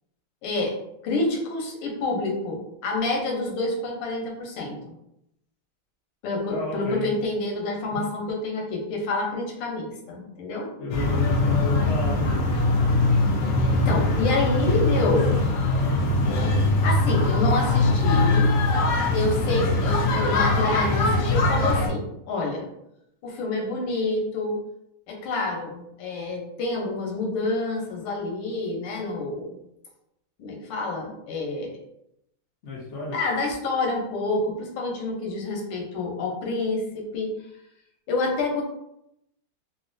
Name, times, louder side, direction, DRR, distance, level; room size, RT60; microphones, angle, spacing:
voice 1, 0.4-0.8 1.0-5.0 6.2-10.7 13.7-15.4 16.8-18.6 19.1-22.7 23.2-24.6 25.1-29.6 30.4-31.8 33.1-37.3 38.1-38.6, left 2 dB, 90° left, 0 dB, 1.7 m, -28 dB
voice 2, 6.5-7.1 7.9-8.0 10.8-12.5 15.1-15.2 32.6-33.2, left 1 dB, 50° left, -5 dB, 0.9 m, -33 dB
sound 1, 10.9-21.9, left 2 dB, 75° left, 1.0 m, -22 dB
4.0 x 2.1 x 2.5 m, 0.80 s
omnidirectional pair, 2.3 m